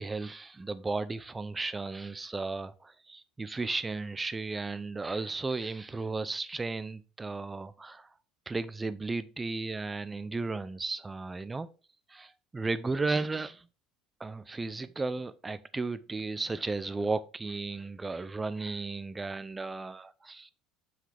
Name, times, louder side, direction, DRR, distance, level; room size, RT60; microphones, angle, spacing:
voice 1, 0.0-8.1 8.5-11.7 12.1-13.7 14.2-20.5, right 3 dB, 15° right, 0.6 m, -34 dB
7.7 x 5.9 x 3.4 m
supercardioid pair, 115°, 0 cm